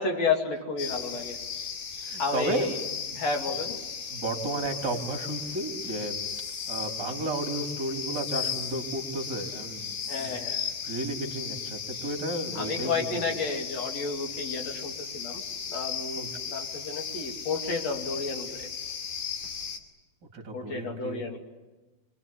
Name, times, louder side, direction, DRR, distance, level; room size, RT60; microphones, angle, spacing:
voice 1, 0.0-1.4 2.2-2.8 3.2-3.8 10.1-10.6 12.6-15.4 15.7-18.7 20.5-21.4, left 4 dB, 45° left, 2 dB, 3.5 m, -31 dB
sound 1, 0.8-19.8, left 7 dB, 65° left, 4.2 m, -36 dB
voice 2, 2.0-2.7 3.1-3.2 4.1-6.2 6.7-10.4 10.8-13.3 16.2-16.3 20.3-21.2, right 2 dB, 30° right, 3 dB, 3.6 m, -33 dB
27.5 x 24.5 x 8.5 m, 1.2 s
omnidirectional pair, 4.4 m